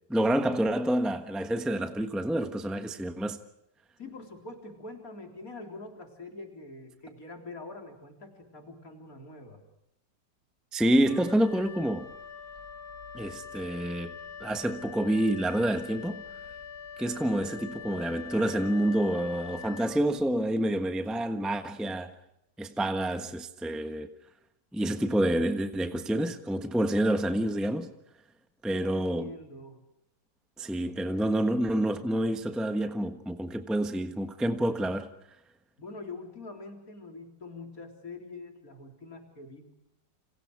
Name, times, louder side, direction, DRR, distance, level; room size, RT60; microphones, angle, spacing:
voice 1, 0.1-3.4 10.7-12.1 13.1-14.1 14.4-16.2 17.0-22.1 22.6-24.1 24.7-27.9 28.6-29.3 30.6-35.1, right 1 dB, ahead, 1.1 m, -28 dB
voice 2, 4.0-9.6 28.7-29.8 35.8-39.8, left 3 dB, 55° left, 4.4 m, -44 dB
Wind instrument woodwind instrument, 11.0-20.5, left 7 dB, 85° left, 4.8 m, -44 dB
30.0 x 27.5 x 4.8 m
omnidirectional pair, 1.8 m